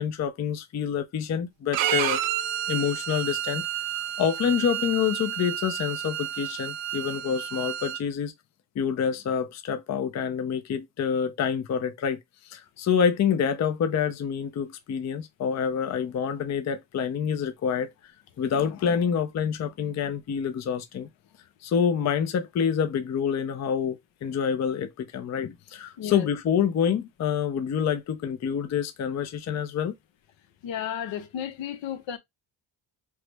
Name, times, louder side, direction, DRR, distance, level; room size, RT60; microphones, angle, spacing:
voice 1, 0.0-2.2 2.7-3.6 3.9-8.3 8.8-12.2 12.5-17.9 18.4-21.1 21.6-29.9, left 7 dB, 40° left, 0.5 m, -27 dB
Bowed string instrument, 1.7-8.0, right 11 dB, 85° right, 0.5 m, -30 dB
voice 2, 26.0-26.3 30.6-32.2, left 9 dB, 75° left, 0.8 m, -33 dB
3.1 x 2.0 x 3.2 m
cardioid pair, 100°, 45 cm